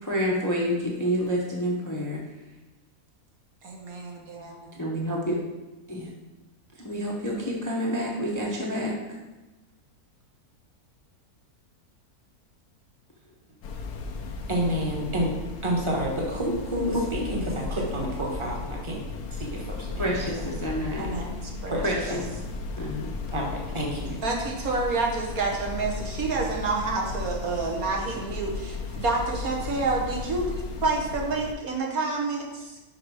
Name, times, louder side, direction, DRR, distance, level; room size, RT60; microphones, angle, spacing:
voice 1, 0.0-2.2 4.8-5.4 5.9-6.1 6.8-8.9 20.0-21.1 21.8-22.2 22.8-23.1, equal, 15° left, -3 dB, 0.8 m, -28 dB
voice 2, 3.6-4.7 21.0-21.8 24.2-30.5 30.8-32.8, right 3 dB, 70° right, 0 dB, 1.5 m, -28 dB
sound 1, 13.6-31.5, left 3 dB, 85° left, 1.3 m, -35 dB
voice 3, 14.5-15.3 15.6-19.0 19.3-20.5 21.7-22.2 23.3-24.2, equal, 20° right, -2 dB, 1.2 m, -29 dB
5.7 x 5.5 x 4.8 m, 1.1 s
omnidirectional pair, 1.6 m